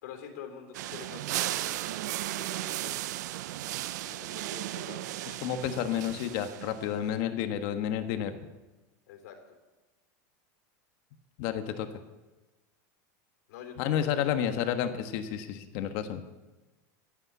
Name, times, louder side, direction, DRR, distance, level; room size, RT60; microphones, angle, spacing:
voice 1, 0.0-3.1 4.1-5.1 9.1-9.4 13.5-14.3, left 8 dB, 75° left, 3 dB, 3.5 m, -46 dB
sound 1, 0.7-7.0, right 15 dB, 80° right, 0.5 m, -35 dB
voice 2, 5.4-8.3 11.4-11.9 13.8-16.2, left 9 dB, 50° left, 8 dB, 1.3 m, -30 dB
14.0 x 9.0 x 8.3 m, 1.1 s
supercardioid pair, 165°, 9 cm